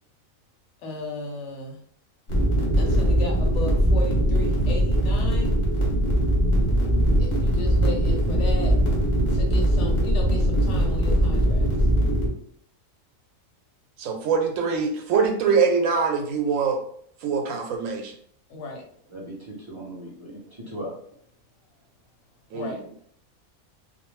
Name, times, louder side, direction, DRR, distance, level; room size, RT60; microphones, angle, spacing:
voice 1, 0.8-1.8 2.8-5.5 7.2-8.8 9.3-11.9 18.5-18.8 22.5-22.8, left 2 dB, 70° left, 1 dB, 0.9 m, -35 dB
sound 1, 2.3-12.3, right 1 dB, 40° left, 0.8 m, -21 dB
voice 2, 14.0-16.8 17.2-18.1 22.5-22.7, right 5 dB, 85° right, 3 dB, 1.0 m, -23 dB
voice 3, 19.1-20.9, right 1 dB, 35° right, -5 dB, 0.5 m, -38 dB
2.4 x 2.0 x 3.1 m, 0.63 s
omnidirectional pair, 1.4 m